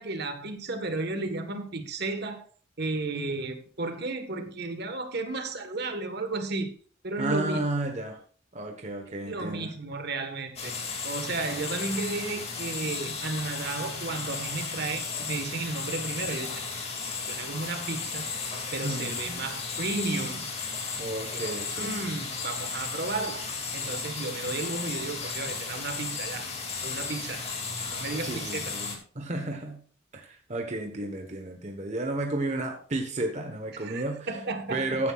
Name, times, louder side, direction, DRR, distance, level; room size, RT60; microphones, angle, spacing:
voice 1, 0.0-2.4 2.8-6.7 7.0-7.6 9.3-10.7 11.0-16.7 17.3-18.2 18.7-20.5 21.3-23.5 23.7-26.5 26.8-27.4 27.9-28.7 33.7-35.0, right 3 dB, 55° right, 7 dB, 1.4 m, -33 dB
voice 2, 7.2-8.2 8.5-9.7 18.8-19.4 21.0-21.9 28.2-29.8 30.1-34.3 34.7-35.1, right 2 dB, 35° right, 3 dB, 1.2 m, -32 dB
sound 1, 10.6-29.0, left 5 dB, 30° left, 2.3 m, -35 dB
15.0 x 9.6 x 2.4 m, 0.44 s
head